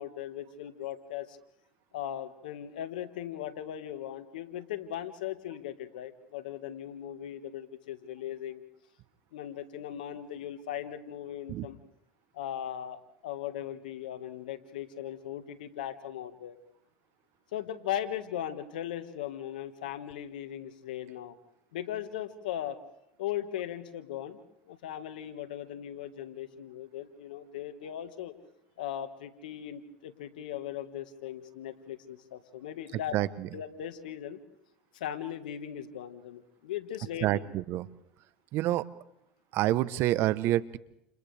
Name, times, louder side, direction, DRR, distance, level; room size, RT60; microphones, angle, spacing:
voice 1, 0.0-1.4 1.9-8.6 9.3-11.8 12.3-16.6 17.5-21.4 21.7-22.8 23.2-24.4 24.7-28.3 28.8-33.1 33.5-34.4 34.9-37.4, left 11 dB, 90° left, 9 dB, 1.7 m, -38 dB
voice 2, 33.1-33.5 37.2-37.9 38.5-38.9 39.5-40.8, right 15 dB, 65° right, 16 dB, 1.0 m, -27 dB
29.0 x 29.0 x 3.4 m, 0.81 s
supercardioid pair, 85°, 4 cm